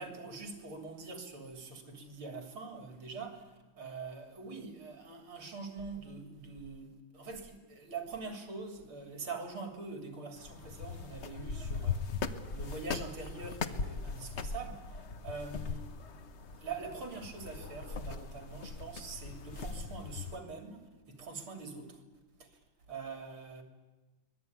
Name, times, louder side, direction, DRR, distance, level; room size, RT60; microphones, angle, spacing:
voice 1, 0.0-3.4 3.8-12.2 12.5-15.9 16.6-22.0 22.4-22.5 22.9-23.6, right 4 dB, 75° right, 3.9 m, -44 dB
sound 1, 10.4-20.4, left 5 dB, 45° left, 0.9 m, -40 dB
24.0 x 19.0 x 9.5 m
omnidirectional pair, 2.3 m